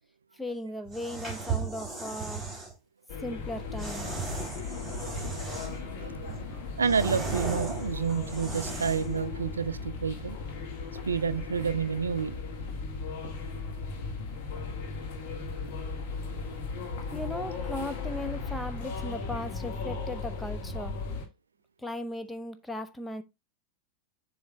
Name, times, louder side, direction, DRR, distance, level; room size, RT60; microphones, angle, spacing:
voice 1, 0.3-2.4 3.2-4.1 17.1-21.0 21.8-23.2, left 1 dB, 5° left, 0.7 m, -37 dB
sound 1, 0.8-2.7 3.8-5.9 6.3-9.2, right 4 dB, 10° right, 3.9 m, -36 dB
sound 2, 3.1-21.3, left 4 dB, 45° left, 1.7 m, -37 dB
voice 2, 6.0-6.4 6.8-10.4 11.1-12.4, right 6 dB, 75° right, 0.3 m, -29 dB
7.2 x 3.2 x 4.4 m
figure-of-eight pair, 90°, 0 cm